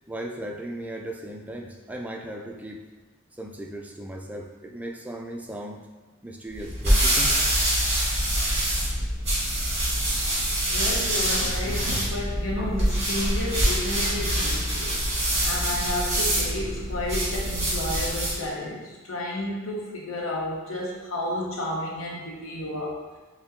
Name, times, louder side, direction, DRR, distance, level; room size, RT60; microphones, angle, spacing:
voice 1, 0.1-2.8 3.3-5.9 6.2-7.4, right 1 dB, 5° right, 1 dB, 0.3 m, -37 dB
sound 1, 6.5-18.4, right 1 dB, 35° right, 1.4 m, -25 dB
voice 2, 10.7-15.0 15.4-23.0, left 1 dB, 90° left, -3 dB, 0.8 m, -31 dB
5.6 x 2.2 x 2.9 m, 1.3 s
head